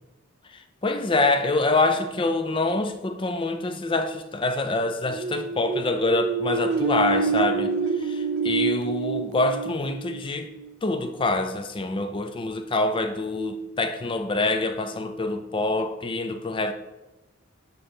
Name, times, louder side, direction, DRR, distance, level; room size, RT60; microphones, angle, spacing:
voice 1, 0.5-10.5 10.8-16.7, left 2 dB, 25° left, 0.4 m, -26 dB
sound 1, 5.0-10.7, right 5 dB, 60° right, 0.4 m, -27 dB
6.8 x 3.2 x 4.3 m
head